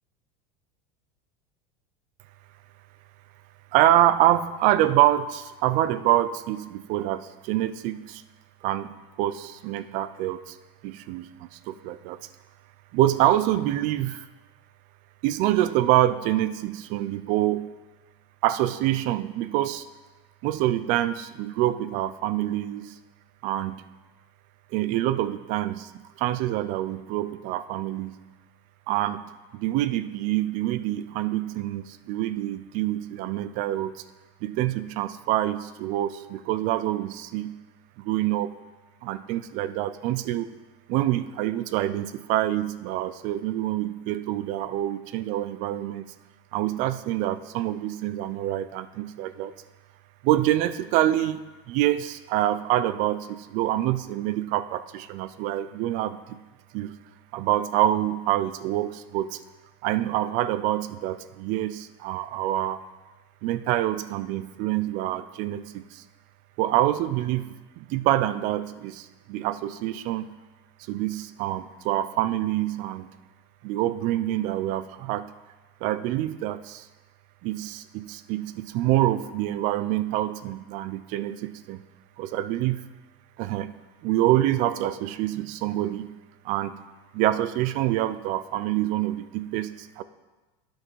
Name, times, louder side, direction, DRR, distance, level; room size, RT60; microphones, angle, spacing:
voice 1, 3.7-8.2 8.6-8.9 9.2-10.6 10.8-12.2 12.9-14.3 15.2-17.8 18.4-19.9 20.4-23.0 23.4-23.8 24.7-28.2 28.9-34.0 34.4-37.6 38.0-38.5 39.0-40.5 40.9-46.1 46.5-49.5 50.2-56.4 56.7-57.0 57.3-59.4 59.8-62.8 63.4-66.0 66.6-70.3 70.9-73.1 73.6-75.3 75.8-76.9 77.4-81.8 82.2-82.8 83.4-83.7 84.0-86.2 86.4-86.8 87.1-90.0, right 14 dB, 55° right, 14 dB, 0.5 m, -26 dB
9.6 x 6.4 x 4.7 m, 1.2 s
supercardioid pair, 125°, 16 cm